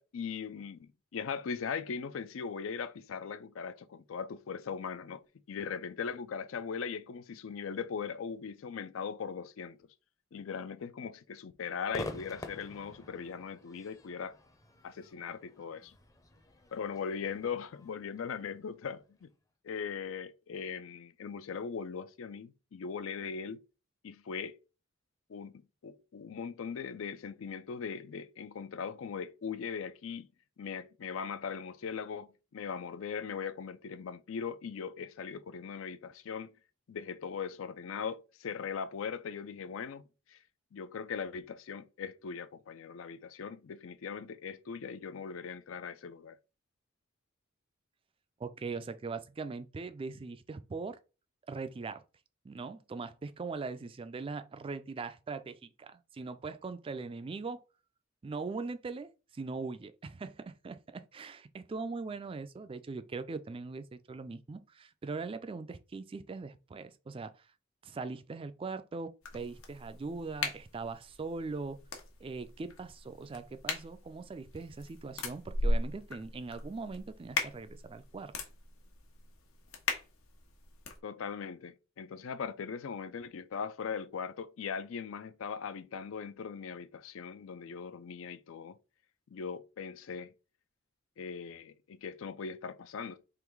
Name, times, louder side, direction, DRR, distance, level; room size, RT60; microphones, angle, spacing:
voice 1, 0.0-9.8 10.3-14.3 14.8-16.0 16.7-19.3 19.6-23.6 24.0-24.5 25.3-25.5 25.8-30.3 30.6-36.5 36.9-40.0 40.3-40.4 40.7-46.4 81.0-88.8 89.3-90.3 91.2-93.2, left 6 dB, 70° left, 0.4 m, -39 dB
Crowd / Fireworks, 11.9-19.2, left 1 dB, 15° left, 0.6 m, -47 dB
voice 2, 48.4-51.0 51.5-52.0 52.4-57.6 58.2-67.5 67.8-71.8 72.2-78.3, right 4 dB, 25° right, 0.3 m, -41 dB
sound 1, 69.2-81.0, left 2 dB, 85° left, 1.1 m, -38 dB
3.8 x 3.0 x 4.6 m
head